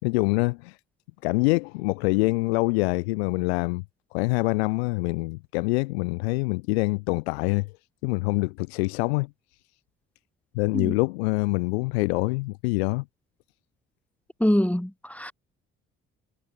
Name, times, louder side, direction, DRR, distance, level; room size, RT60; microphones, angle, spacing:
voice 1, 0.0-0.8 1.2-3.8 4.1-7.7 8.0-9.3 10.5-13.0, left 26 dB, 85° left, 5.7 m, -25 dB
voice 2, 14.4-15.3, left 1 dB, 5° left, 5.6 m, -24 dB
hypercardioid pair, 50°, 31 cm